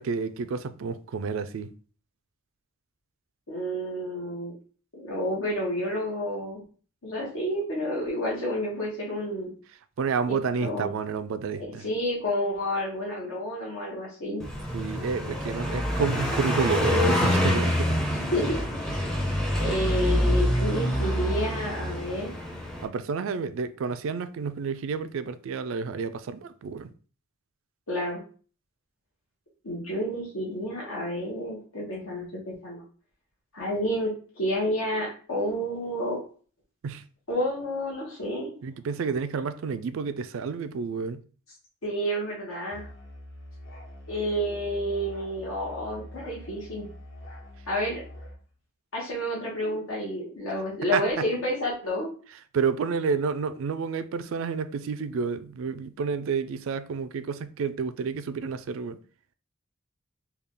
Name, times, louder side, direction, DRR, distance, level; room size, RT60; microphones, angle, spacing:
voice 1, 0.0-1.7 10.0-11.9 14.7-18.0 22.8-26.9 36.8-37.0 38.6-41.2 50.9-51.3 52.5-59.0, right 5 dB, 70° right, 0.3 m, -30 dB
voice 2, 3.5-4.5 4.9-6.6 7.0-9.5 10.3-10.9 11.8-14.4 18.1-19.0 19.6-22.3 27.9-28.2 29.6-32.8 33.5-36.2 37.3-38.5 41.8-42.9 44.1-46.9 47.7-48.0 48.9-52.1, equal, 80° left, 1.2 m, -30 dB
Car passing by, 14.4-22.8, equal, 5° left, 0.5 m, -26 dB
Musical instrument, 42.7-48.4, left 1 dB, 60° left, 1.0 m, -44 dB
3.4 x 2.3 x 3.7 m
head